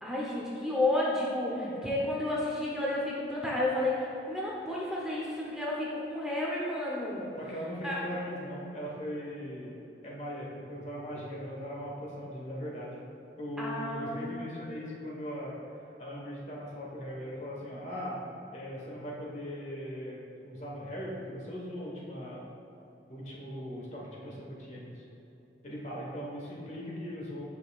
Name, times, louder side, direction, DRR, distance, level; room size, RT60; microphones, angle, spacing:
voice 1, 0.0-7.3 7.8-8.0 13.6-14.6, left 1 dB, 5° right, -5 dB, 0.7 m, -31 dB
voice 2, 1.6-1.9 7.4-9.8 10.0-13.0 13.4-15.5 16.0-18.2 18.5-22.4 23.1-25.0 25.6-27.5, equal, 40° left, -4 dB, 1.2 m, -39 dB
8.8 x 5.6 x 2.4 m, 3.0 s
head